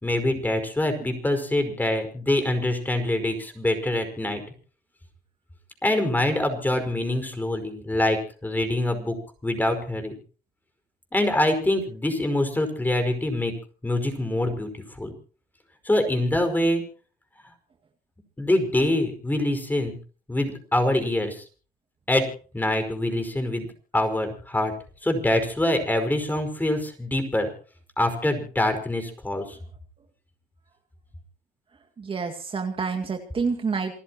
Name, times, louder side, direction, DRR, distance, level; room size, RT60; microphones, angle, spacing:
voice 1, 0.0-4.4 5.8-9.2 9.4-10.1 11.1-13.5 13.8-14.7 15.0-15.1 15.9-16.8 18.4-20.0 20.3-21.4 22.1-22.2 22.5-23.7 23.9-24.7 25.0-27.5 28.0-29.6, left 1 dB, 10° left, 7 dB, 5.1 m, -24 dB
voice 2, 32.0-34.0, right 5 dB, 30° right, 4 dB, 2.3 m, -28 dB
28.0 x 14.5 x 3.0 m, 0.40 s
cardioid pair, 110°, 17 cm